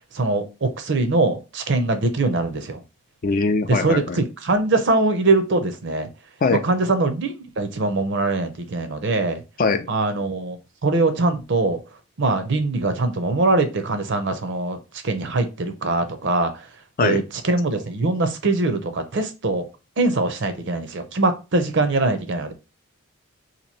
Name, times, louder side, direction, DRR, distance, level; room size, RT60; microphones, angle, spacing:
voice 1, 0.1-2.8 3.7-6.1 6.5-9.4 9.9-11.8 12.2-16.7 17.0-19.7 20.0-22.5, right 2 dB, 55° right, 0.6 m, -22 dB
voice 2, 3.2-4.2 6.4-6.6 9.6-9.9 17.0-17.2, left 4 dB, 40° left, 0.4 m, -21 dB
2.9 x 2.6 x 4.0 m
head